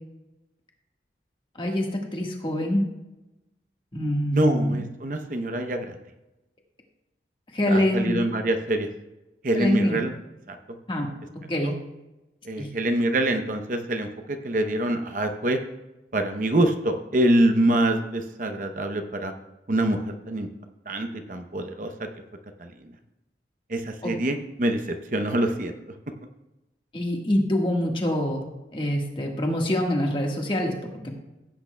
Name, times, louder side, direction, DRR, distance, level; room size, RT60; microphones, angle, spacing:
voice 1, 1.6-2.8 3.9-4.8 7.5-8.2 9.5-10.0 10.9-11.1 11.5-11.7 12.6-12.7 24.0-24.1 26.9-28.4 28.7-31.1, left 1 dB, 30° left, 1 dB, 1.4 m, -25 dB
voice 2, 4.3-6.0 7.7-8.9 9.4-10.1 10.5-10.6 11.6-11.7 12.4-15.6 16.1-19.3 19.7-20.5 20.9-22.1 22.6-22.7 23.7-24.9 25.1-25.7, right 1 dB, 45° right, 6 dB, 0.7 m, -25 dB
15.5 x 8.6 x 2.2 m, 0.99 s
head